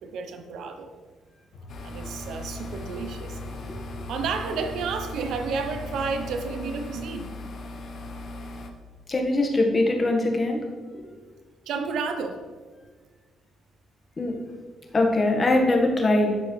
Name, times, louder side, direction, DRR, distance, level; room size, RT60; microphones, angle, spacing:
voice 1, 0.0-0.9 1.8-3.4 4.1-7.3 11.7-12.5, right 5 dB, 75° right, 6 dB, 0.6 m, -31 dB
sound 1, 1.5-7.1, equal, 80° left, 1.2 m, -43 dB
sound 2, 1.7-8.7, left 2 dB, 60° left, 0.8 m, -38 dB
voice 2, 9.1-10.6 10.9-11.1 14.2-14.3 14.9-16.3, left 2 dB, 35° left, 1 dB, 1.3 m, -22 dB
12.0 x 4.7 x 3.1 m, 1.5 s
cardioid pair, 90°, 0 cm